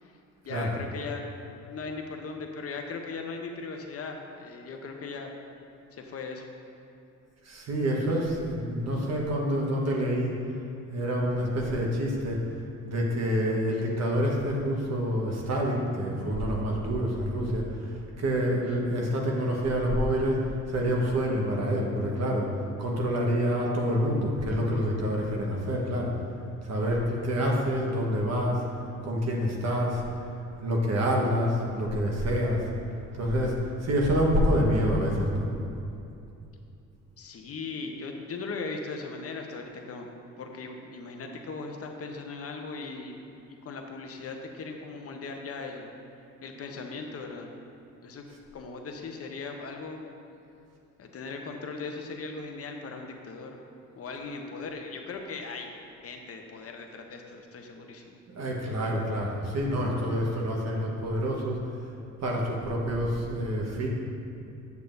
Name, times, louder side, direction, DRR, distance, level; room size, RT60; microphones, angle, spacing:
voice 1, 0.4-1.2 1.7-5.3 5.9-6.5 16.9-17.0 37.2-40.1 40.4-43.2 43.5-45.9 46.4-47.5 48.0-48.2 48.5-50.0 51.0-53.6 54.0-55.7 56.0-58.2, left 4 dB, 50° left, 3 dB, 0.8 m, -38 dB
voice 2, 7.4-10.4 10.9-12.4 12.8-17.7 18.2-20.4 20.7-22.5 22.8-26.1 26.6-28.6 29.0-30.0 30.6-32.6 33.2-33.6 33.8-35.5 58.3-61.6 62.2-63.9, equal, 60° right, -2 dB, 1.3 m, -27 dB
8.1 x 6.8 x 2.6 m, 2.7 s
cardioid pair, 90°, 30 cm